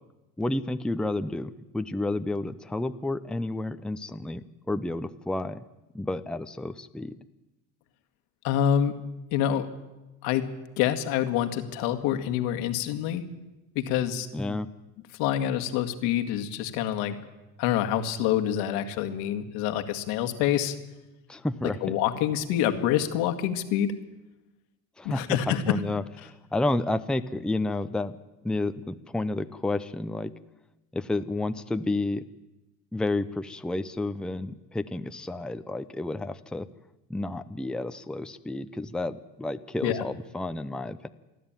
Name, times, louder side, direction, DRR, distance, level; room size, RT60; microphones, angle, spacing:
voice 1, 0.4-5.6 5.9-7.2 14.3-14.7 21.3-21.9 25.0-28.2 28.4-30.3 30.9-32.2 32.9-36.7 37.1-41.1, left 2 dB, ahead, 10 dB, 0.6 m, -31 dB
voice 2, 8.4-8.9 9.3-9.7 10.2-10.5 10.8-13.2 13.8-14.3 15.2-17.2 17.6-20.8 21.8-23.9 25.1-25.8 39.8-40.0, left 10 dB, 85° left, 8 dB, 2.0 m, -26 dB
28.5 x 11.0 x 9.0 m, 1.0 s
cardioid pair, 115°, 36 cm